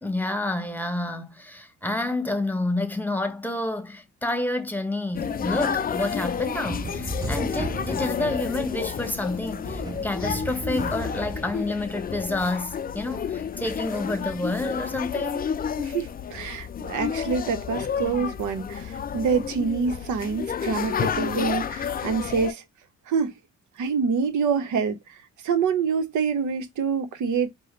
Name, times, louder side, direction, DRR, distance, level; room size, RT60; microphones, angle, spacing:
voice 1, 0.0-15.5, left 2 dB, 5° left, 1.1 m, -29 dB
sound 1, 5.1-22.5, left 7 dB, 30° left, 0.4 m, -31 dB
sound 2, 5.2-11.5, right 1 dB, 15° right, 0.6 m, -36 dB
voice 2, 15.9-22.6 23.1-23.3 23.8-25.0 25.4-27.5, right 5 dB, 75° right, 1.0 m, -26 dB
4.9 x 2.2 x 3.9 m
cardioid pair, 90°, 30 cm